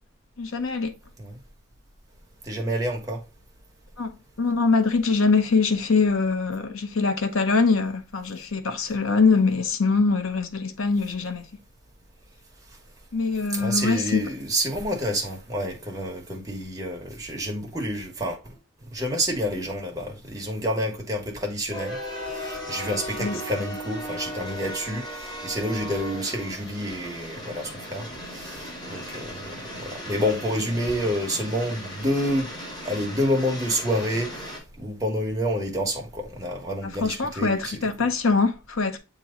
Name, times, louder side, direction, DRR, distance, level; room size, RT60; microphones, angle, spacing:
voice 1, 0.4-0.9 4.0-4.1 4.4-11.4 13.1-14.2 23.2-23.4 36.8-39.0, left 4 dB, 75° left, 0.9 m, -23 dB
voice 2, 2.5-3.2 13.5-18.4 18.9-22.0 22.4-25.0 25.4-28.0 28.3-28.5 28.9-29.3 29.8-32.5 32.8-34.3 34.8-37.8, equal, 15° right, 1.4 m, -28 dB
sound 1, 21.7-34.6, equal, 25° left, 3.8 m, -37 dB
8.3 x 3.0 x 3.9 m
head